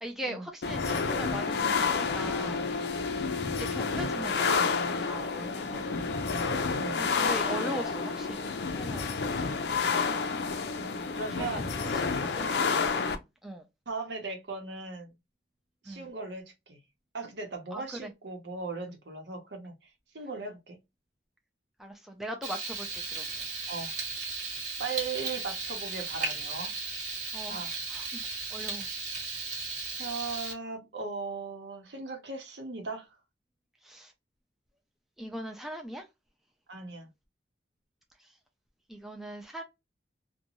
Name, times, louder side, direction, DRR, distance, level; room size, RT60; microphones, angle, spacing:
voice 1, 0.0-2.6 3.6-6.0 7.0-9.5 10.8-13.7 15.9-16.1 17.7-18.1 21.8-23.3 27.3-27.6 27.9-28.9 33.8-34.1 35.2-36.0 38.9-39.6, right 1 dB, ahead, 0.4 m, -41 dB
sound 1, 0.6-13.2, left 5 dB, 70° left, 0.4 m, -29 dB
voice 2, 11.1-11.8 13.9-15.1 15.8-16.8 17.1-19.9 20.1-20.8 23.7-23.9 24.8-26.7 27.5-27.7 30.0-33.1 36.7-37.1, right 4 dB, 80° right, 0.9 m, -38 dB
Frying (food), 22.4-30.5, right 4 dB, 45° right, 1.1 m, -36 dB
2.6 x 2.2 x 2.9 m
head